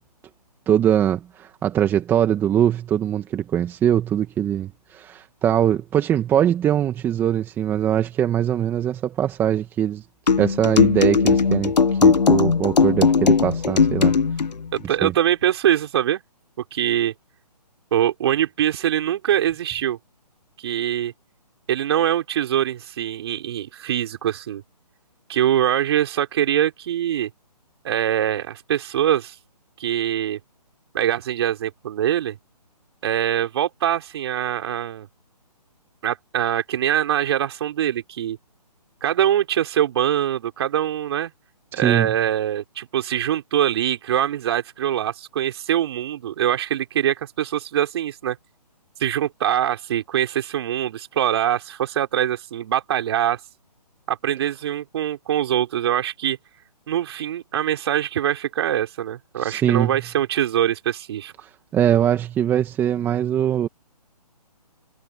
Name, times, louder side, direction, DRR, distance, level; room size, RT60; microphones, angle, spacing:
voice 1, 0.7-10.0 10.4-14.1 15.0-15.1 41.7-42.1 59.4-59.9 61.7-63.7, right 10 dB, 10° right, 2.0 m, -22 dB
sound 1, 10.3-14.5, left 5 dB, 85° left, 1.3 m, -18 dB
voice 2, 14.7-16.2 16.7-17.1 17.9-20.0 20.6-21.1 21.7-24.6 25.3-27.3 27.8-29.4 29.8-30.4 30.9-32.4 33.0-35.1 36.0-38.4 39.0-41.3 41.8-48.4 49.0-53.4 54.1-56.4 56.9-61.3, right 11 dB, 40° right, 5.2 m, -23 dB
hypercardioid pair, 155°, 21 cm